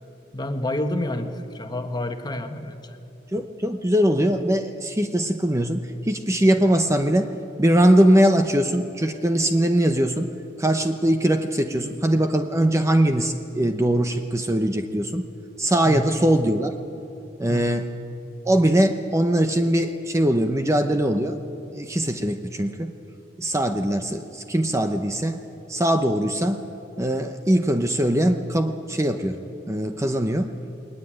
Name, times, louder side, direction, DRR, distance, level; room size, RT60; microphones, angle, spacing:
voice 1, 0.3-3.0 15.8-16.0 17.5-17.7, left 1 dB, 25° left, 6 dB, 1.3 m, -29 dB
voice 2, 3.3-7.3 7.6-10.3 10.6-15.3 15.6-16.7 17.4-17.9 18.4-21.4 21.7-22.9 23.4-25.4 25.7-26.6 27.0-29.4 29.7-30.5, right 1 dB, 15° right, 7 dB, 0.7 m, -21 dB
21.0 x 19.5 x 8.9 m, 2.8 s
head